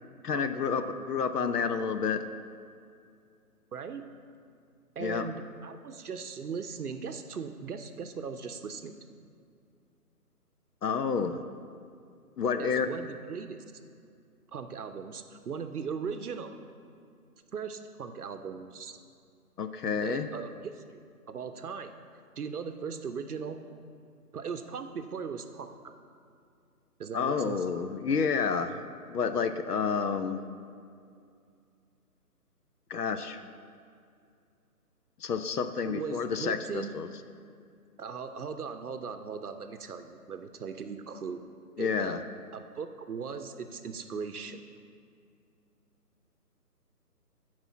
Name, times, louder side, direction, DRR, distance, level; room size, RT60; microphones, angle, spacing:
voice 1, 0.2-2.2 5.0-5.3 10.8-11.4 12.4-12.9 19.6-20.3 27.1-28.8 29.1-30.4 32.9-33.4 35.2-37.1 41.8-42.2, left 6 dB, 75° left, 9 dB, 0.7 m, -29 dB
voice 2, 3.7-4.0 5.0-9.0 12.6-13.6 14.5-16.5 17.5-19.0 20.0-20.8 21.3-21.9 22.4-23.6 24.3-25.9 27.0-27.7 35.8-37.0 38.0-41.4 41.8-42.2 42.5-44.6, right 6 dB, 70° right, 8 dB, 0.7 m, -38 dB
9.4 x 4.9 x 7.2 m, 2.4 s
hypercardioid pair, 175°, 47 cm